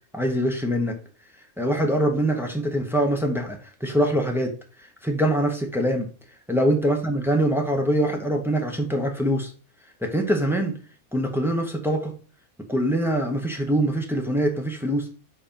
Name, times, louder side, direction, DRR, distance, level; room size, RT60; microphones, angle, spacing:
voice 1, 0.1-1.0 1.6-4.5 5.0-6.1 6.5-9.5 10.0-10.7 11.1-12.1 12.7-15.1, right 1 dB, ahead, 2 dB, 0.7 m, -23 dB
4.8 x 4.2 x 5.3 m, 0.38 s
omnidirectional pair, 1.6 m